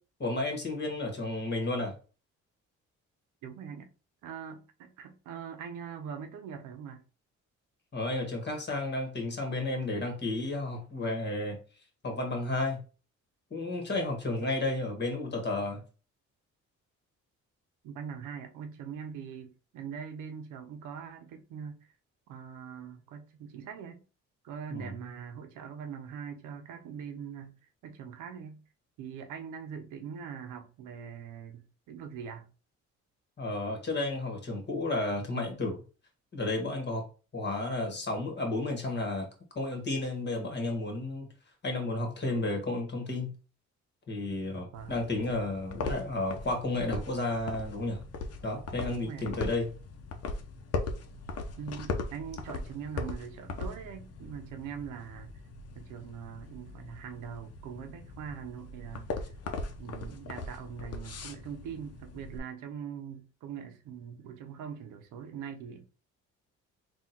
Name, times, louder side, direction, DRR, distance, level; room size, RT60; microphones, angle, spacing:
voice 1, 0.2-1.9 7.9-11.6 12.0-12.8 13.5-15.8 24.7-24.9 33.4-35.8 36.3-37.1 37.3-39.3 39.5-41.3 41.6-43.4 44.1-48.0 48.4-49.7, left 2 dB, 35° left, 1.7 m, -32 dB
voice 2, 3.4-3.9 4.2-7.0 17.8-21.8 22.3-24.0 24.4-28.6 29.0-32.5 44.5-44.9 48.9-49.4 51.6-55.3 55.7-59.3 59.8-65.9, right 7 dB, 90° right, 0.8 m, -42 dB
sound 1, 44.7-62.4, left 3 dB, 55° left, 0.8 m, -39 dB
3.6 x 2.5 x 4.3 m
cardioid pair, 90°, 30 cm